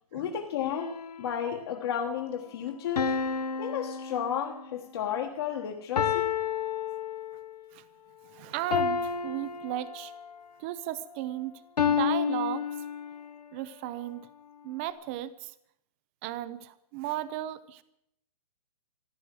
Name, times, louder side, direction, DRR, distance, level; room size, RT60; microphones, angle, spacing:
voice 1, 0.1-0.9 1.2-3.1 3.6-6.3, left 8 dB, 40° left, 2 dB, 1.4 m, -32 dB
sound 1, 0.8-1.6 3.0-4.8 6.0-7.6 8.7-10.4 11.8-13.4, left 7 dB, 85° left, 1.3 m, -30 dB
voice 2, 8.3-10.1 10.6-12.6 13.5-14.3 14.6-15.5 16.2-17.8, right 14 dB, 20° right, 15 dB, 0.6 m, -35 dB
15.0 x 11.0 x 7.6 m, 0.75 s
hypercardioid pair, 165°, 20 cm